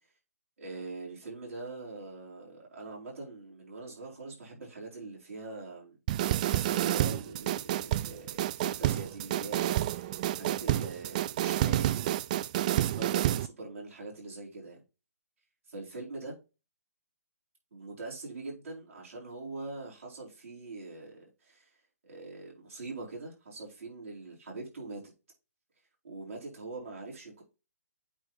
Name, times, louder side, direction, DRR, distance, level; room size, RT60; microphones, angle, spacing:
voice 1, 0.6-12.1 12.7-14.8 15.7-16.4 17.7-21.7 22.0-25.0 26.0-27.4, right 3 dB, 60° right, 4.2 m, -43 dB
sound 1, 6.1-13.5, right 13 dB, 30° right, 0.3 m, -29 dB
8.6 x 3.5 x 4.0 m
figure-of-eight pair, 135°, 8 cm